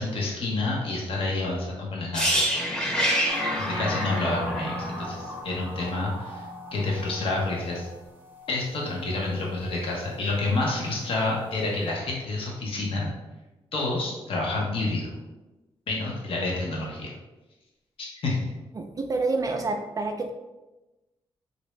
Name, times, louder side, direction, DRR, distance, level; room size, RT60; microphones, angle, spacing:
voice 1, 0.0-2.4 3.6-6.4 6.7-7.9 8.5-13.1 13.7-15.1 15.9-17.1 18.0-18.5, left 2 dB, 65° left, -3 dB, 0.8 m, -28 dB
sound 1, 2.1-6.0 6.3-6.5, equal, 10° left, 0.8 m, -27 dB
sound 2, 3.3-10.5 10.8-11.1, left 1 dB, 20° right, 0.8 m, -39 dB
voice 2, 18.7-20.3, right 3 dB, 35° right, 3 dB, 0.3 m, -28 dB
3.2 x 2.6 x 3.1 m, 1.1 s
cardioid pair, 85°, 10 cm